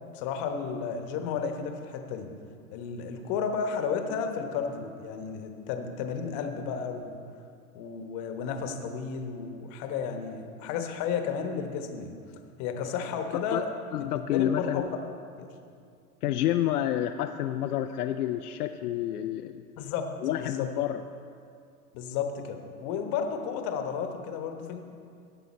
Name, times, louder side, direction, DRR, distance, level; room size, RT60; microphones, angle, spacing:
voice 1, 0.1-2.3 2.7-7.2 7.7-12.2 12.6-13.7 14.1-14.9 15.4-15.5 19.8-20.1 20.4-20.7 21.9-24.8, left 6 dB, 40° left, 5 dB, 1.1 m, -32 dB
voice 2, 13.9-14.8 16.2-19.6 20.2-21.0, left 11 dB, 75° left, 7 dB, 0.6 m, -29 dB
16.5 x 5.5 x 4.2 m, 2.3 s
hypercardioid pair, 120°, 46 cm